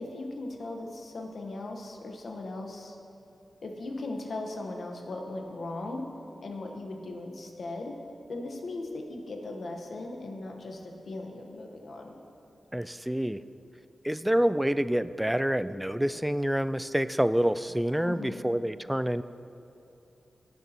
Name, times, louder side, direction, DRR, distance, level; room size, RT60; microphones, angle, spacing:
voice 1, 0.0-3.0 3.6-6.0 6.4-8.0 8.3-12.1 18.0-18.4, left 2 dB, 65° left, 2 dB, 1.2 m, -38 dB
voice 2, 12.7-13.4 14.0-19.2, equal, 5° right, 14 dB, 0.3 m, -27 dB
17.0 x 6.5 x 3.0 m, 2.7 s
cardioid pair, 50°, 0 cm